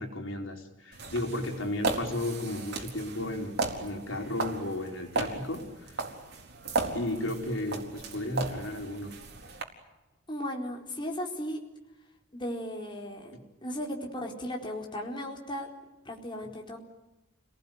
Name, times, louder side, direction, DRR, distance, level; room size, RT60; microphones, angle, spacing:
voice 1, 0.0-6.1 6.9-9.1 16.4-16.5, left 1 dB, 80° left, 2 dB, 4.8 m, -34 dB
sound 1, 0.9-9.6, right 3 dB, 60° right, 4.3 m, -36 dB
voice 2, 10.3-11.6 12.3-13.3 13.6-15.7 16.0-16.8, equal, 25° left, 0 dB, 4.4 m, -36 dB
30.0 x 19.0 x 9.5 m, 1.0 s
head